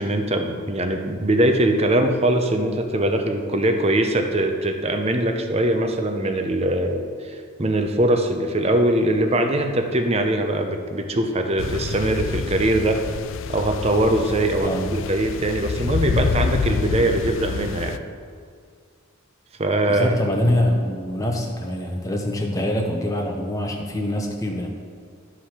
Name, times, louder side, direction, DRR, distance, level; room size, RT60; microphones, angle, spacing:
voice 1, 0.0-13.0 13.5-18.0 19.6-20.2, right 1 dB, 30° right, 5 dB, 0.7 m, -22 dB
sound 1, 11.6-18.0, left 5 dB, 65° left, 0.4 m, -27 dB
voice 2, 19.9-24.7, left 1 dB, 15° left, 0 dB, 0.8 m, -24 dB
12.0 x 4.9 x 5.8 m, 2.1 s
head